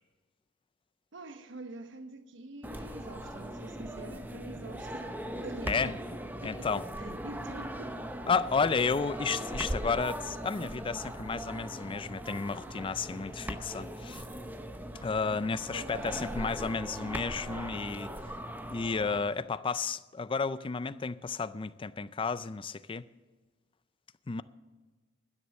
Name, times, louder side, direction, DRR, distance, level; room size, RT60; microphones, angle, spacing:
voice 1, 1.1-5.1 5.4-6.0 6.4-8.0 15.7-16.3, right 2 dB, 65° right, 1.0 m, -45 dB
sound 1, 2.6-19.2, right 1 dB, 10° right, 0.8 m, -39 dB
voice 2, 6.4-6.8 8.3-14.2 15.0-18.1 18.7-23.1 24.3-24.4, left 5 dB, 25° left, 0.4 m, -32 dB
12.0 x 10.0 x 6.5 m
head